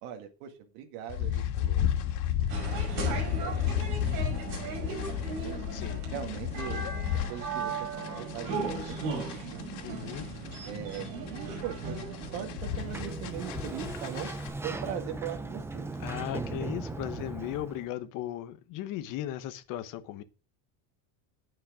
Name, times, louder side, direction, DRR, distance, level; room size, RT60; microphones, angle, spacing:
voice 1, 0.0-1.9 2.6-4.1 4.6-5.6 6.1-6.8 7.1-10.2 10.6-12.0 12.3-14.3 14.6-15.9, right 10 dB, 70° right, 2.0 m, -41 dB
sound 1, 1.1-14.5, left 11 dB, 70° left, 2.8 m, -33 dB
sound 2, 2.5-13.3, right 4 dB, 50° right, 5.5 m, -37 dB
voice 2, 5.7-6.0 9.8-10.3 16.0-20.2, left 12 dB, 45° left, 1.2 m, -37 dB
Sliding door, 12.6-17.9, right 2 dB, 5° right, 0.5 m, -38 dB
9.5 x 8.7 x 5.0 m
cardioid pair, 170°, 42 cm